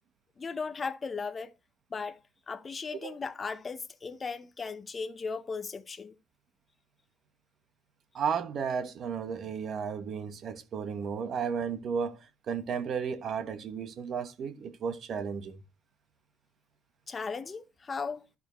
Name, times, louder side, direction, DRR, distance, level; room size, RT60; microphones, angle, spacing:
voice 1, 0.4-1.5 1.9-2.2 2.5-6.1 17.1-18.3, left 5 dB, 20° left, 0.8 m, -37 dB
voice 2, 8.1-15.6, right 6 dB, 40° right, 1.1 m, -34 dB
11.0 x 7.0 x 3.0 m
cardioid pair, 155°, 0 cm